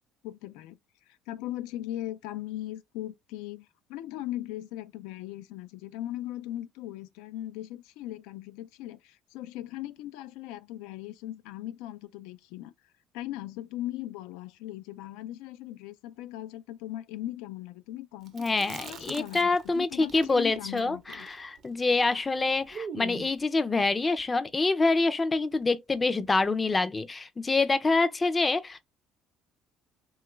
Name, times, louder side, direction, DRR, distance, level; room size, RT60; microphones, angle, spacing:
voice 1, 0.2-0.8 1.3-12.7 13.1-21.3, left 14 dB, 90° left, 0.3 m, -39 dB
voice 2, 18.3-28.8, left 3 dB, 20° left, 0.4 m, -26 dB
Chewing mastication, 18.3-19.7 20.0-23.4, right 6 dB, 55° right, 0.6 m, -43 dB
2.9 x 2.3 x 3.0 m
cardioid pair, 100°, 0 cm